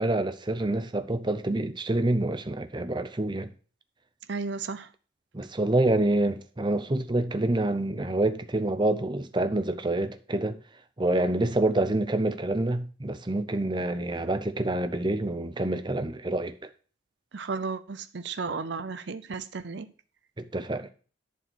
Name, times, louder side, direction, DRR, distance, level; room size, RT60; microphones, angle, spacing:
voice 1, 0.0-3.5 5.3-10.6 11.0-16.7 20.4-20.9, right 2 dB, 25° right, 0.7 m, -27 dB
voice 2, 4.3-4.9 17.3-19.9, right 4 dB, 65° right, 0.6 m, -34 dB
11.0 x 4.6 x 6.2 m
head